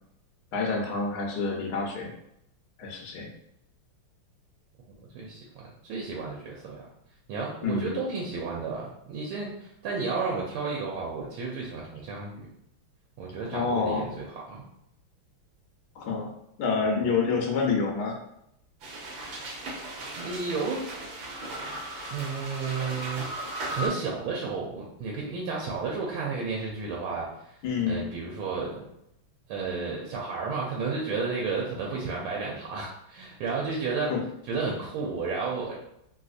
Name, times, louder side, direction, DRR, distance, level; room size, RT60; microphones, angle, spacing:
voice 1, 0.5-2.1 2.8-3.3 7.6-8.0 13.5-14.0 16.0-16.3 16.6-18.2 27.6-28.1 34.1-34.2, left 4 dB, 65° left, -1 dB, 1.0 m, -27 dB
voice 2, 5.1-6.9 7.3-12.5 13.2-14.6 20.1-20.9 22.1-23.3 23.7-27.6 27.9-28.9 29.5-34.1 34.5-35.7, right 4 dB, 80° right, -3 dB, 1.5 m, -32 dB
sound 1, 18.8-23.9, right 1 dB, 60° right, 1.3 m, -37 dB
3.4 x 2.7 x 2.4 m, 0.77 s
omnidirectional pair, 2.4 m